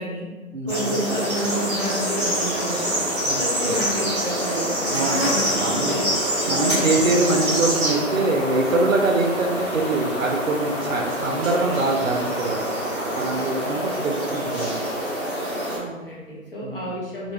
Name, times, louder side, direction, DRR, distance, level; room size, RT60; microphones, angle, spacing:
voice 1, 0.0-0.3 0.7-3.0 3.4-7.3 15.7-17.3, equal, 40° left, -5 dB, 0.8 m, -30 dB
voice 2, 0.5-0.9 3.2-3.8 4.9-5.3 5.5-6.0 6.5-12.6 13.2-14.9 16.6-16.9, right 2 dB, 70° right, 1 dB, 0.6 m, -24 dB
sound 1, 0.7-15.8, equal, 20° right, 1.0 m, -26 dB
sound 2, 1.3-16.2, right 1 dB, ahead, 0.6 m, -37 dB
2.8 x 2.2 x 2.8 m, 1.2 s
figure-of-eight pair, 160°, 41 cm